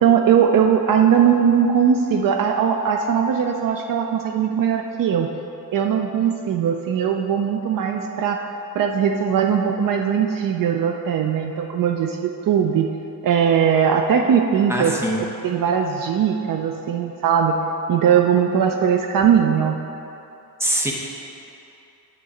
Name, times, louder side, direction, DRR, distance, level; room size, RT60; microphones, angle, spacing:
voice 1, 0.0-5.3 5.7-8.4 8.7-12.9 13.2-15.0 15.4-17.6 17.9-19.8, right 7 dB, 60° right, 4 dB, 0.5 m, -19 dB
voice 2, 14.7-15.2 20.6-20.9, right 1 dB, 5° right, -2 dB, 0.9 m, -22 dB
9.2 x 3.7 x 7.0 m, 2.9 s
cardioid pair, 150°, 38 cm